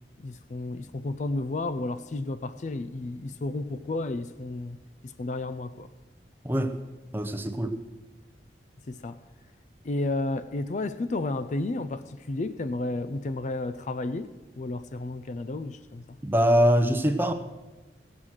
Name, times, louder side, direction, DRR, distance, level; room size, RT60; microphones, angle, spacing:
voice 1, 0.2-4.8 5.0-5.9 8.9-9.2 9.8-16.0, left 2 dB, 45° left, 0.4 m, -32 dB
voice 2, 7.1-7.8 16.2-17.3, equal, 10° right, 0.6 m, -23 dB
17.0 x 7.4 x 6.3 m
head